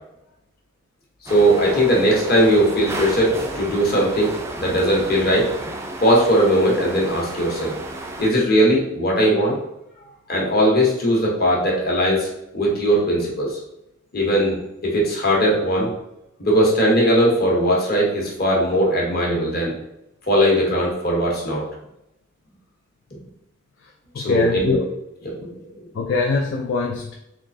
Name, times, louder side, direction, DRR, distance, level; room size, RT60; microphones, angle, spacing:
voice 1, 1.2-4.3 4.6-5.5 6.0-7.7 8.2-9.5 10.3-12.3 12.5-13.6 14.1-14.6 14.8-15.9 16.4-19.7 20.3-21.6 24.2-24.8 25.2-25.6, equal, 45° left, -3 dB, 1.2 m, -19 dB
sound 1, 1.3-8.3, right 2 dB, 15° right, 0.4 m, -32 dB
voice 2, 24.1-24.8 25.9-27.1, left 4 dB, 65° left, 0 dB, 0.4 m, -23 dB
3.7 x 3.2 x 2.6 m, 0.84 s
head